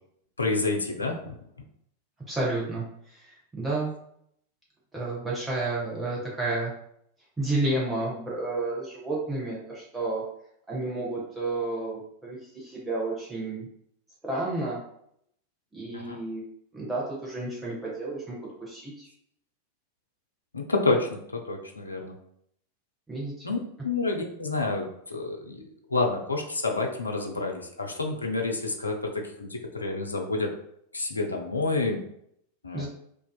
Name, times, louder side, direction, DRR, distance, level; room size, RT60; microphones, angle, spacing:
voice 1, 0.4-1.2 15.9-16.2 20.5-22.1 23.4-25.6 25.9-30.5 30.9-32.0 32.6-32.9, left 3 dB, 80° left, 2 dB, 0.3 m, -29 dB
voice 2, 2.3-4.0 4.9-6.7 7.4-10.2 10.7-13.7 14.2-14.8 15.7-16.4 16.7-19.1 23.1-23.5 32.7-32.9, right 2 dB, 10° right, -5 dB, 0.7 m, -31 dB
2.4 x 2.4 x 2.2 m, 0.71 s
figure-of-eight pair, 90°, 0 cm